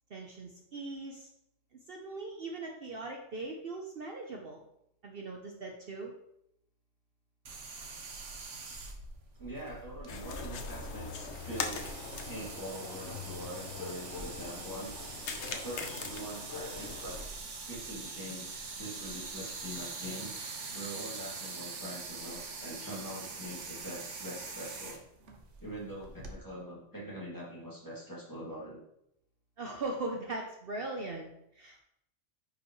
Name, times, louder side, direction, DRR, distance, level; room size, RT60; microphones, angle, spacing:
voice 1, 0.1-1.3 1.9-4.6 5.0-6.1 29.6-31.3 31.5-31.8, right 2 dB, 55° right, 1 dB, 0.9 m, -39 dB
sound 1, 7.4-26.4, right 4 dB, 75° right, 1.3 m, -44 dB
voice 2, 9.4-11.8 12.2-15.0 15.5-17.2 17.6-18.5 18.8-20.3 20.7-25.0 25.6-28.9, equal, 15° left, -6 dB, 2.4 m, -43 dB
sound 2, 10.1-17.3, left 4 dB, 65° left, 1.1 m, -41 dB
9.2 x 5.3 x 3.1 m, 0.78 s
omnidirectional pair, 1.3 m